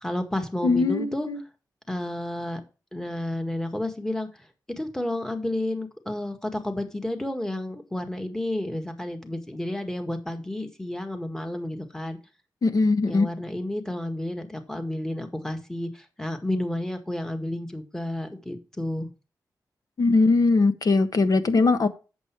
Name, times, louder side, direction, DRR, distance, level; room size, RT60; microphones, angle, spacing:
voice 1, 0.0-1.3 1.9-2.6 2.9-4.3 4.8-12.2 13.1-19.1, left 1 dB, 5° left, 1.8 m, -31 dB
voice 2, 0.6-1.4 12.6-13.3 20.0-21.9, left 3 dB, 60° left, 1.1 m, -21 dB
8.3 x 7.1 x 4.6 m
cardioid pair, 70°, 7 cm